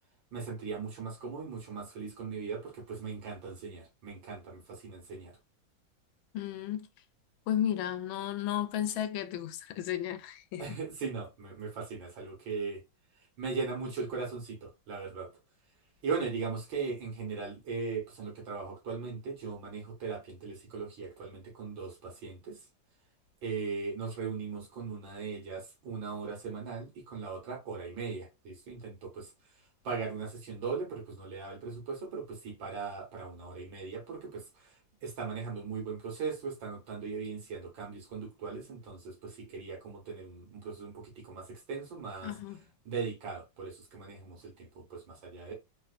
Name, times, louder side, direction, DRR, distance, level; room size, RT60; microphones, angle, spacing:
voice 1, 0.3-5.3 10.6-12.8 13.4-15.3 16.0-22.6 23.4-29.3 29.8-34.7 35.0-42.3 42.9-45.5, right 5 dB, 75° right, 2.0 m, -39 dB
voice 2, 6.3-6.9 7.5-10.8 42.2-42.6, left 11 dB, 85° left, 1.3 m, -33 dB
4.0 x 2.5 x 2.4 m
omnidirectional pair, 2.1 m